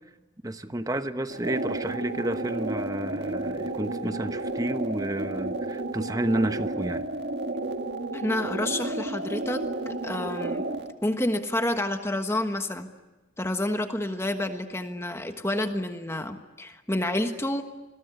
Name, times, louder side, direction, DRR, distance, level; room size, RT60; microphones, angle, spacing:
voice 1, 0.4-7.1, right 1 dB, 20° right, 10 dB, 1.0 m, -30 dB
sound 1, 1.3-10.9, right 2 dB, 60° right, 1.7 m, -32 dB
voice 2, 8.1-10.6 11.0-12.9 13.4-17.6, left 1 dB, 15° left, 7 dB, 1.4 m, -29 dB
28.5 x 22.0 x 9.6 m, 1.1 s
head